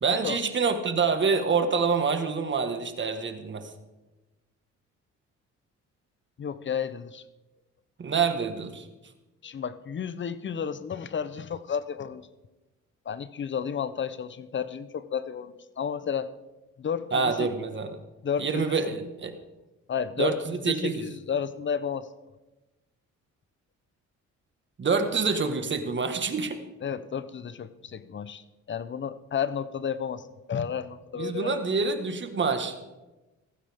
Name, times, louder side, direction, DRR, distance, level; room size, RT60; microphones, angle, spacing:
voice 1, 0.0-3.7 8.0-8.9 17.1-18.0 18.4-19.3 20.2-21.0 24.8-26.6 31.1-32.9, right 5 dB, 40° right, 7 dB, 1.7 m, -27 dB
voice 2, 6.4-7.2 9.4-12.3 13.1-16.3 16.8-17.5 18.2-18.8 19.9-22.1 26.8-31.6, left 7 dB, 40° left, 14 dB, 0.8 m, -32 dB
17.5 x 15.0 x 3.7 m, 1.1 s
cardioid pair, 90°, 30 cm